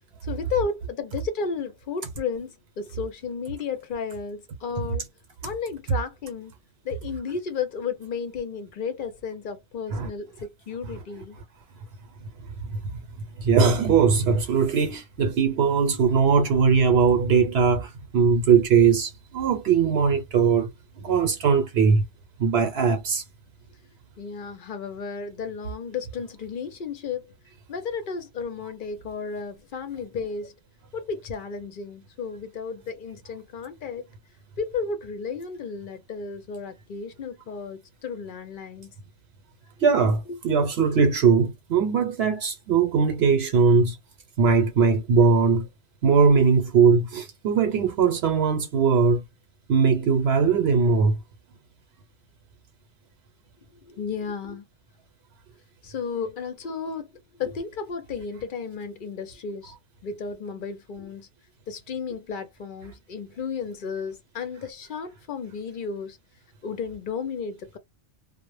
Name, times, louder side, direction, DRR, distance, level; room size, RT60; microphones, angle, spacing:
voice 1, 0.2-5.1 5.4-6.5 6.8-11.4 21.1-21.3 24.2-27.3 27.7-30.5 30.9-34.1 34.6-38.9 40.3-40.4 53.7-54.7 55.8-57.1 57.4-59.7 60.0-61.3 61.7-66.2 66.6-67.8, left 5 dB, 55° left, 0.7 m, -33 dB
voice 2, 13.4-20.7 21.0-22.0 22.4-23.2 39.8-44.0 44.4-45.7 46.0-49.2 49.7-51.2, right 5 dB, 75° right, 0.9 m, -20 dB
2.1 x 2.0 x 3.1 m
omnidirectional pair, 1.1 m